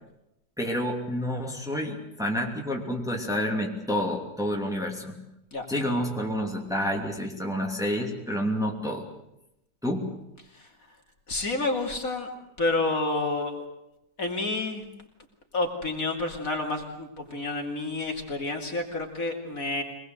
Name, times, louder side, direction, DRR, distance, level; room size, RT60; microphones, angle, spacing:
voice 1, 0.6-5.2 5.7-9.1 9.8-10.1, equal, ahead, 0 dB, 2.8 m, -29 dB
voice 2, 11.3-12.3 12.6-13.6 14.2-14.8 15.5-19.8, left 2 dB, 50° left, 2 dB, 3.1 m, -29 dB
23.5 x 20.0 x 8.0 m, 0.85 s
omnidirectional pair, 1.8 m